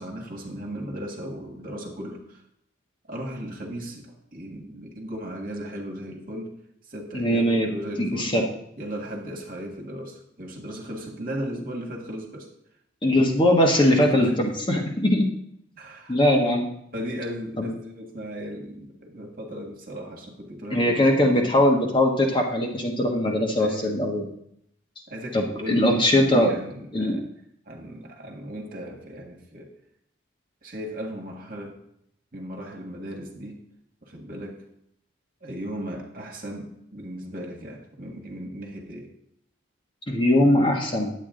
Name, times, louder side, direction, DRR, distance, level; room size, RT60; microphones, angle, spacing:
voice 1, 0.0-2.4 3.1-6.6 6.9-8.3 8.8-12.5 14.0-14.4 15.8-16.2 16.9-21.0 21.2-21.7 23.6-24.0 25.1-26.0 26.3-27.2 27.7-29.7 30.6-31.8 32.3-33.6 34.0-34.6 35.4-39.1, equal, 45° right, 1 dB, 1.8 m, -36 dB
voice 2, 7.1-7.7 8.0-8.4 13.0-15.3 16.1-16.7 17.6-17.7 20.7-24.3 25.3-26.5 26.9-27.2 40.1-41.1, left 1 dB, 25° left, 0 dB, 1.3 m, -21 dB
10.0 x 8.6 x 3.8 m, 0.72 s
head